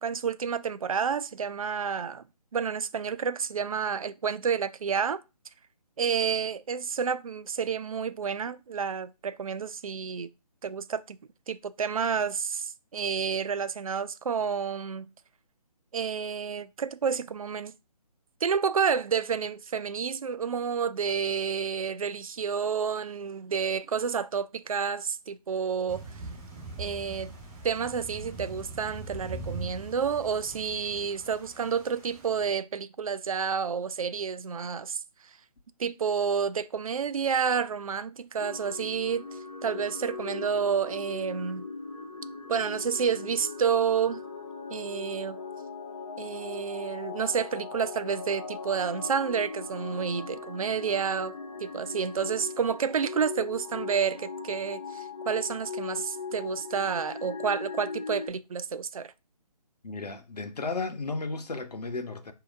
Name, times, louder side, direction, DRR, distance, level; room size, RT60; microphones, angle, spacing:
voice 1, 0.0-2.2 2.5-5.2 6.0-10.3 10.6-11.2 11.5-15.0 15.9-17.7 18.4-26.0 26.8-27.3 27.6-35.0 35.8-41.6 42.5-44.2 44.7-45.4 46.2-59.1, right 6 dB, 60° right, 0.4 m, -30 dB
Thunder / Rain, 25.9-32.5, right 2 dB, 20° right, 2.0 m, -42 dB
sound 1, 38.4-58.3, left 4 dB, 50° left, 0.9 m, -39 dB
voice 2, 59.8-62.3, left 3 dB, 75° left, 0.8 m, -34 dB
4.8 x 2.7 x 2.5 m
figure-of-eight pair, 145°, 20 cm